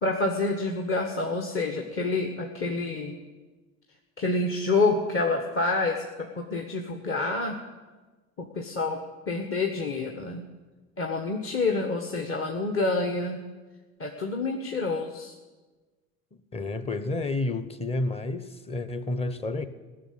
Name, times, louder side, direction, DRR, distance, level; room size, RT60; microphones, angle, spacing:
voice 1, 0.0-3.2 4.2-7.6 8.4-9.0 9.3-10.4 11.0-13.4 14.0-15.4, left 3 dB, 30° left, 1.5 m, -28 dB
voice 2, 16.5-19.7, left 2 dB, 15° left, 1.0 m, -30 dB
16.0 x 6.9 x 9.6 m
hypercardioid pair, 80°, 42 cm